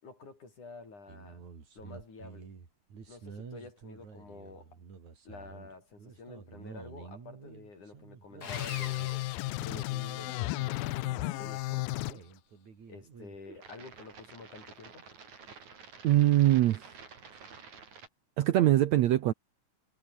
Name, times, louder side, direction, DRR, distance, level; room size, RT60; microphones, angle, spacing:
voice 1, 0.0-1.5 1.8-2.5 3.1-4.8 5.2-9.3 9.6-12.2 12.9-15.0, left 3 dB, 60° left, 8.3 m, -49 dB
sound 1, 1.1-18.1, right 5 dB, 55° right, 5.3 m, -50 dB
Sawing, 8.4-10.3, left 6 dB, 35° left, 1.7 m, -44 dB
sound 2, 8.5-12.1, left 20 dB, 90° left, 2.5 m, -34 dB
voice 2, 16.0-16.8 17.3-17.4 18.4-19.3, right 13 dB, 70° right, 1.8 m, -23 dB
omnidirectional pair, 4.0 m